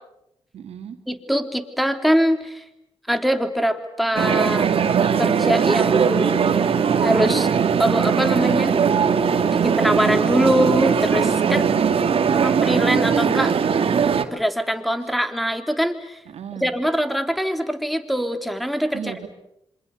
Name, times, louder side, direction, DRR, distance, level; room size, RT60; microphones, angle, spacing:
voice 1, 0.5-1.0 11.4-12.6 15.0-15.1 16.2-16.7 18.9-19.3, right 8 dB, 75° right, 7 dB, 2.9 m, -33 dB
voice 2, 1.1-2.6 3.1-4.7 5.2-6.4 7.0-7.5 7.8-8.8 9.6-11.6 12.4-13.6 14.3-16.2 16.6-19.0, equal, ahead, 8 dB, 3.2 m, -23 dB
sound 1, 4.2-14.2, right 6 dB, 60° right, 2.3 m, -19 dB
27.0 x 26.0 x 8.0 m, 0.81 s
cardioid pair, 75°, 11 cm